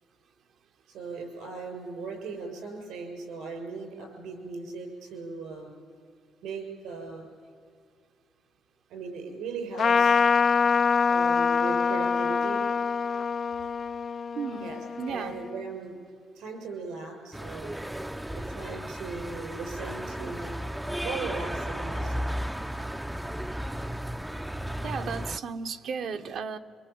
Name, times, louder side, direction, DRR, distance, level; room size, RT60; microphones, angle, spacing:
voice 1, 0.9-5.8 6.4-7.3 8.9-10.2 11.1-12.6 14.6-14.8 15.1-15.9 16.4-17.7 18.3-20.6 21.0-22.2, right 4 dB, 90° right, 4 dB, 7.1 m, -38 dB
Trumpet, 9.8-15.6, left 6 dB, 50° left, 0.6 m, -25 dB
voice 2, 14.3-14.7 15.0-15.3 22.8-22.9 24.8-26.6, right 6 dB, 70° right, 6 dB, 1.2 m, -34 dB
sound 1, 17.3-25.4, equal, 5° right, 0.6 m, -34 dB
24.5 x 23.5 x 8.7 m, 2.2 s
cardioid pair, 90°, 0 cm